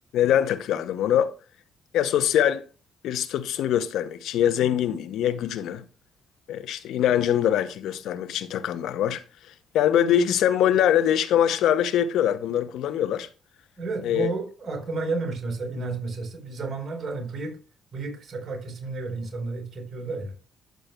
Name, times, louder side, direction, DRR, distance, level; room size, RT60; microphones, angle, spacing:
voice 1, 0.1-1.3 1.9-2.6 3.0-5.9 6.5-9.2 9.7-13.3 14.0-14.3, left 10 dB, 85° left, 0.6 m, -23 dB
voice 2, 13.8-17.5 17.9-20.3, right 3 dB, 50° right, 3.9 m, -31 dB
10.0 x 7.7 x 2.2 m
cardioid pair, 90°, 0 cm